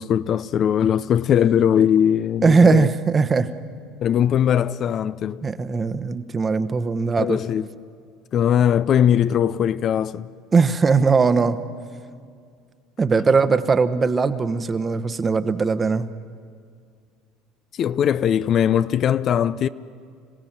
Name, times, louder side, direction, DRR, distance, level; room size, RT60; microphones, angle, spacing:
voice 1, 0.0-2.9 4.0-5.4 7.2-7.7 8.3-10.3 17.8-19.7, left 9 dB, 45° left, 0.5 m, -20 dB
voice 2, 2.4-3.5 5.4-7.4 10.5-11.6 13.0-16.1, right 4 dB, 25° right, 1.1 m, -19 dB
26.0 x 16.5 x 7.4 m
supercardioid pair, 90°, 0 cm